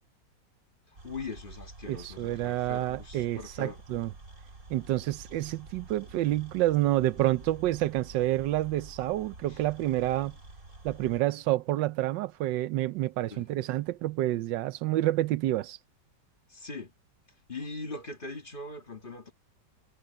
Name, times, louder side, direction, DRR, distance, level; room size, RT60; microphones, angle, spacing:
voice 1, 1.0-3.8 9.5-9.6 13.3-13.5 16.5-16.9 17.5-19.3, left 3 dB, 30° left, 1.8 m, -41 dB
sound 1, 1.0-11.2, right 3 dB, 50° right, 3.9 m, -49 dB
voice 2, 1.9-4.1 4.7-10.3 10.8-15.8, right 15 dB, 90° right, 1.3 m, -28 dB
omnidirectional pair, 1.9 m